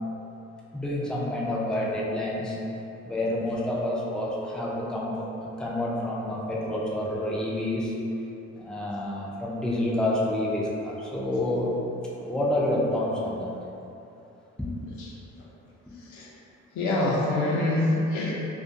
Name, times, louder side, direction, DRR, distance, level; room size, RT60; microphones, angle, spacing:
voice 1, 0.7-2.6 3.0-5.2 5.6-7.9 8.6-11.8 12.2-13.5 14.6-14.7, left 1 dB, 5° left, -5 dB, 0.3 m, -28 dB
voice 2, 16.8-18.3, left 2 dB, 75° left, -4 dB, 0.6 m, -25 dB
2.4 x 2.2 x 2.5 m, 2.9 s
cardioid pair, 90°, 30 cm